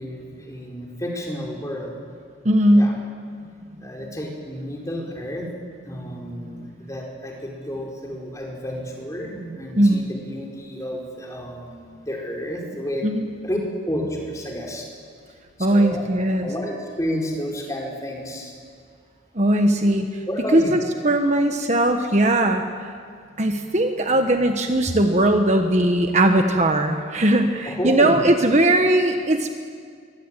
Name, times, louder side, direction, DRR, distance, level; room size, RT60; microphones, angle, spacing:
voice 1, 0.0-2.0 2.7-2.9 3.8-13.1 13.4-13.6 13.9-14.9 15.6-16.0 16.4-18.5 20.3-20.7 23.3-23.8 24.3-24.5 27.6-28.3, equal, 15° left, -1 dB, 4.7 m, -31 dB
voice 2, 2.4-3.0 9.8-10.0 13.0-13.3 15.6-16.5 19.3-20.2 20.5-22.9 23.4-29.5, right 1 dB, 35° right, 5 dB, 1.4 m, -19 dB
24.0 x 23.0 x 9.1 m, 2.1 s
head